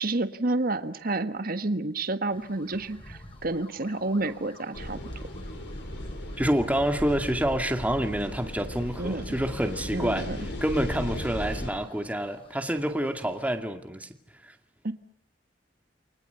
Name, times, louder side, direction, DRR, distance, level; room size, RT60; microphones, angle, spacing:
voice 1, 0.0-5.0 9.0-9.2 9.9-10.4 14.8-14.9, right 2 dB, 55° right, 1.5 m, -29 dB
sound 1, 2.3-13.5, left 1 dB, 30° left, 6.7 m, -52 dB
sound 2, 4.7-11.7, left 1 dB, 75° left, 4.4 m, -36 dB
voice 2, 6.4-10.3 10.6-14.1 14.4-14.5, right 1 dB, 10° right, 2.3 m, -28 dB
29.5 x 23.5 x 7.0 m
head